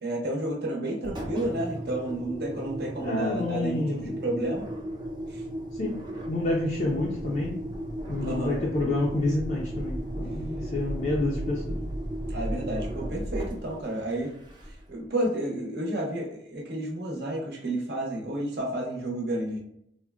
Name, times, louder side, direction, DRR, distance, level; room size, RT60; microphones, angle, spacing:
voice 1, 0.0-4.6 5.3-5.4 8.2-8.6 12.3-14.3 14.9-19.6, right 1 dB, 55° right, -1 dB, 0.8 m, -31 dB
Engine, 1.0-15.0, right 1 dB, 25° right, 0.6 m, -35 dB
voice 2, 3.0-4.2 5.7-7.6 8.1-11.8, left 2 dB, 40° left, -4 dB, 0.4 m, -29 dB
3.7 x 2.1 x 2.2 m, 0.74 s
head